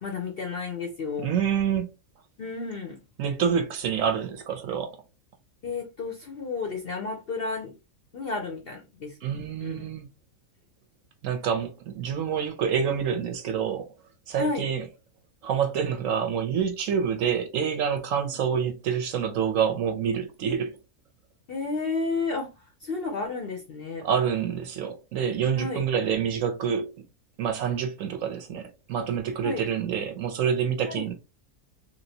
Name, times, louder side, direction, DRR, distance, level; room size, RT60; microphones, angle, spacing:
voice 1, 0.0-1.3 2.4-3.0 5.6-7.8 8.1-9.2 9.6-9.9 14.4-14.7 21.5-24.1 25.6-25.8 29.4-29.6 30.9-31.1, left 4 dB, 60° left, 0.6 m, -32 dB
voice 2, 1.2-1.9 3.2-5.0 9.2-10.1 11.2-13.9 14.3-14.9 15.4-20.8 24.0-26.9 27.4-31.1, right 7 dB, 70° right, 0.9 m, -27 dB
3.2 x 2.8 x 2.7 m
omnidirectional pair, 1.6 m